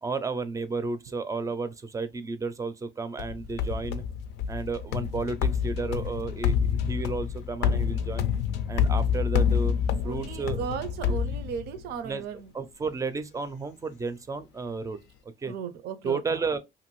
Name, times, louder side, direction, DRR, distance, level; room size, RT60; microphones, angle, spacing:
voice 1, 0.0-4.0 4.5-8.3 8.7-10.7 11.1-11.2 12.0-12.2 12.5-15.0 15.4-15.5 16.0-16.6, right 4 dB, 20° right, 0.4 m, -32 dB
sound 1, 3.2-12.0, left 7 dB, 85° left, 0.4 m, -28 dB
voice 2, 10.0-12.5 15.4-16.4, right 7 dB, 70° right, 0.5 m, -36 dB
2.6 x 2.6 x 3.0 m
cardioid pair, 110°, 17 cm